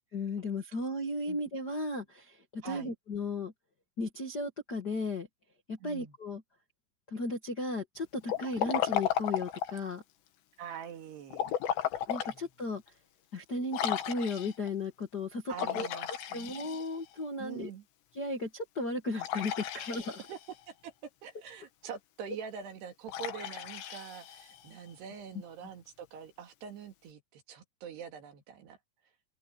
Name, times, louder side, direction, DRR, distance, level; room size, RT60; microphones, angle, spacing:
voice 1, 0.1-3.5 4.0-5.3 5.7-6.4 7.1-10.0 12.1-12.8 13.3-15.9 16.3-17.7 18.1-20.2, left 2 dB, 45° left, 1.3 m, -35 dB
voice 2, 2.6-2.9 5.8-6.2 10.6-11.5 12.3-12.5 15.5-16.8 17.4-17.9 20.3-20.4 20.7-28.8, right 8 dB, 70° right, 4.4 m, -45 dB
Liquid, 8.3-9.9 11.3-12.4 12.9-13.0 13.7-14.7 15.5-17.2 19.2-20.5 23.1-24.7, left 10 dB, 80° left, 3.9 m, -34 dB
open air
omnidirectional pair, 4.9 m